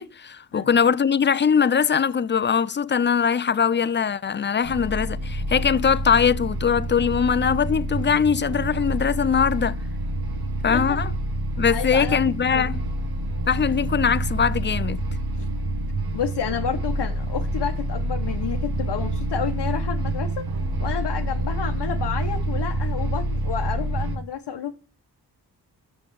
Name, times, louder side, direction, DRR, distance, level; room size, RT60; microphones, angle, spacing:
voice 1, 0.0-9.8 10.6-11.1 11.6-12.8 13.5-15.0, left 7 dB, 30° left, 0.4 m, -21 dB
sound 1, 4.6-24.2, right 1 dB, 65° right, 1.2 m, -27 dB
voice 2, 11.7-12.2 12.5-12.7 15.4-15.5 16.1-20.5 20.8-24.7, left 8 dB, 75° left, 0.9 m, -30 dB
6.0 x 6.0 x 4.7 m
cardioid pair, 50°, 41 cm